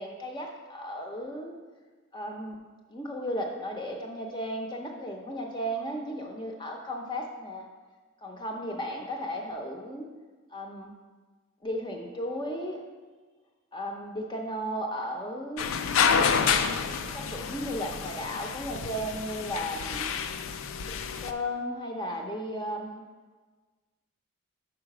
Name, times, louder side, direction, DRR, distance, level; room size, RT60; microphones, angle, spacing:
voice 1, 0.0-1.5 2.1-2.6 2.9-7.7 8.2-10.1 10.5-10.9 11.6-12.8 13.7-15.7 17.1-20.2 20.8-23.0, equal, 20° left, 2 dB, 0.6 m, -35 dB
sound 1, 15.6-21.3, left 6 dB, 75° left, 0.4 m, -29 dB
4.9 x 4.8 x 5.9 m, 1.4 s
head